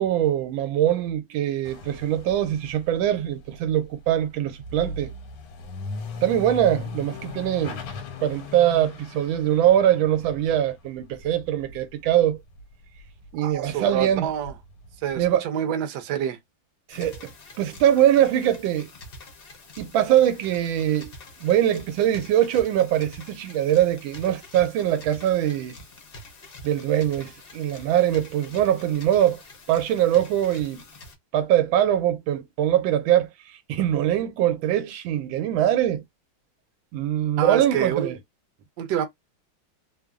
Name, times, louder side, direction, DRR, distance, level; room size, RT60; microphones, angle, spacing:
voice 1, 0.0-5.1 6.2-7.8 8.2-12.4 13.3-14.3 15.2-15.4 16.9-17.3 17.6-18.9 19.8-21.1 21.4-25.8 26.6-29.4 29.7-30.8 31.3-33.3 33.7-36.0 36.9-38.2, right 11 dB, 85° right, 1.4 m, -22 dB
sound 1, 1.6-12.6 12.9-15.3, left 3 dB, 90° left, 1.5 m, -39 dB
voice 2, 13.4-14.5 15.0-16.4 37.4-38.1 38.8-39.1, right 9 dB, 70° right, 1.1 m, -27 dB
sound 2, 16.9-31.2, left 2 dB, 70° left, 0.5 m, -46 dB
3.3 x 2.0 x 2.3 m
omnidirectional pair, 2.1 m